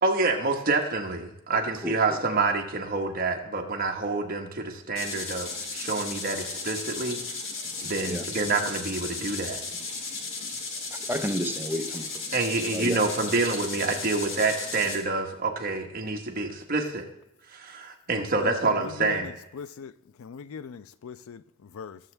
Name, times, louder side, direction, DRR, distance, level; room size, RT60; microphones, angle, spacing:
voice 1, 0.0-5.5 5.7-7.2 7.8-9.6 12.3-17.1 17.5-19.3, right 3 dB, 45° right, 1.3 m, -27 dB
voice 2, 1.5-2.2 8.1-8.3 10.9-12.4 12.7-13.0, equal, 10° right, 0.8 m, -32 dB
sound 1, 4.9-15.0, left 3 dB, 65° left, 1.8 m, -35 dB
voice 3, 18.4-19.9 20.2-22.0, left 5 dB, 90° left, 0.4 m, -41 dB
19.0 x 7.1 x 3.4 m
head